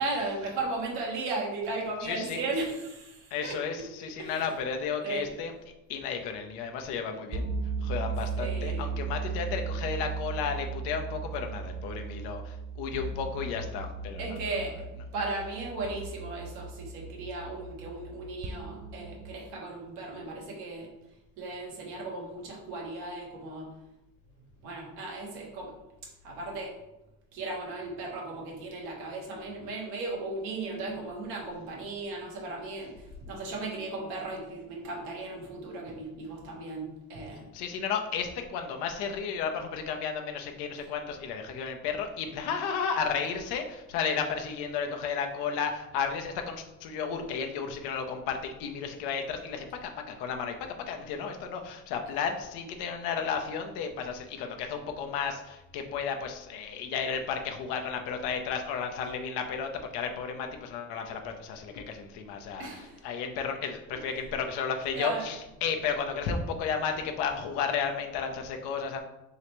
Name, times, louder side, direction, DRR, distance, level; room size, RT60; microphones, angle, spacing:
voice 1, 0.0-3.6 4.2-4.5 5.0-5.3 8.4-8.9 14.2-20.9 21.4-23.7 24.6-25.7 26.2-26.7 27.3-37.5 62.6-63.0 63.9-64.2 64.9-65.3, right 2 dB, 85° right, -2 dB, 1.3 m, -36 dB
voice 2, 2.0-2.4 3.3-5.5 5.9-7.5 7.8-14.4 37.5-69.0, left 6 dB, 80° left, 4 dB, 0.7 m, -33 dB
sound 1, 7.3-19.3, right 4 dB, 25° right, 0.3 m, -36 dB
3.8 x 3.3 x 3.0 m, 0.94 s
supercardioid pair, 75°, 40 cm